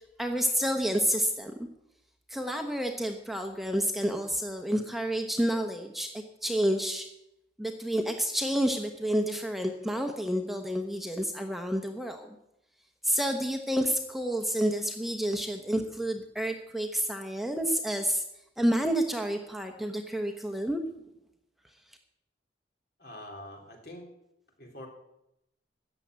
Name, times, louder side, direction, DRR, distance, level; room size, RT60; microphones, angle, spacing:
voice 1, 0.2-1.5 2.3-7.1 7.6-12.3 13.0-18.2 18.6-20.8, equal, ahead, 4 dB, 1.0 m, -29 dB
voice 2, 23.0-24.1 24.6-24.9, left 1 dB, 60° left, 1 dB, 3.4 m, -44 dB
14.0 x 7.3 x 9.2 m, 0.85 s
head